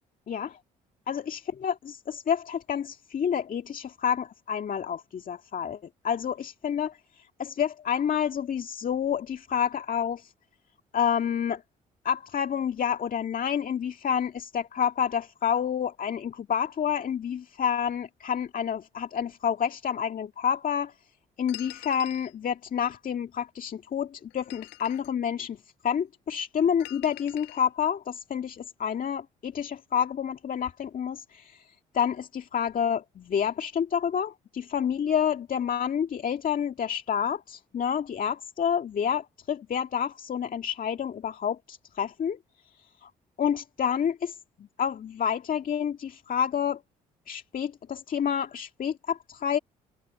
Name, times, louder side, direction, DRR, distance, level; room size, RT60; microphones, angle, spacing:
voice 1, 0.3-0.6 1.1-5.8 6.0-10.3 10.9-11.6 12.0-20.9 21.4-43.1 43.4-46.8 47.3-49.6, left 8 dB, 50° left, 1.9 m, -29 dB
sound 1, 21.5-22.3 24.3-25.1 26.8-27.6, left 24 dB, 80° left, 6.6 m, -45 dB
hypercardioid pair, 55°, 18 cm